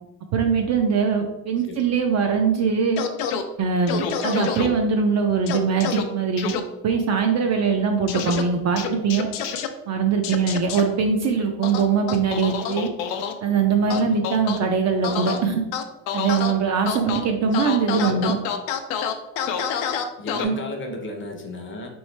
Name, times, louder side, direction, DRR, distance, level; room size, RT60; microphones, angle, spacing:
voice 1, 0.3-3.1 3.6-6.5 6.8-9.3 9.9-12.9 13.4-15.6 16.1-18.4 20.4-20.5, right 5 dB, 40° right, 3 dB, 0.4 m, -22 dB
sound 1, 3.0-3.4 3.9-4.7 5.5-6.0 6.4-6.6 8.1-8.4 8.8-9.7 10.2-10.8 11.6-13.3 13.9-14.6 15.0-15.4 15.7-16.5 16.9-17.2 17.5-20.4, left 8 dB, 90° left, 0.6 m, -27 dB
voice 2, 17.9-18.2 20.2-21.9, left 2 dB, 25° left, 3 dB, 0.6 m, -34 dB
3.5 x 3.1 x 3.1 m, 0.92 s
cardioid pair, 120°, 45 cm